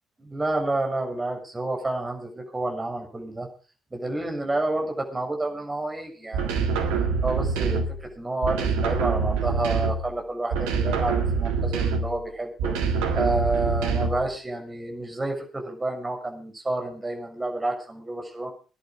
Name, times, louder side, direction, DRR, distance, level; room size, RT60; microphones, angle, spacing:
voice 1, 0.2-3.5 3.9-6.7 7.2-18.5, right 2 dB, 20° right, 3 dB, 6.4 m, -29 dB
sound 1, 6.3-8.1 8.4-10.2 10.5-12.2 12.6-14.3, right 5 dB, 70° right, 1.9 m, -25 dB
19.5 x 11.0 x 5.1 m, 0.36 s
figure-of-eight pair, 45°, 0 cm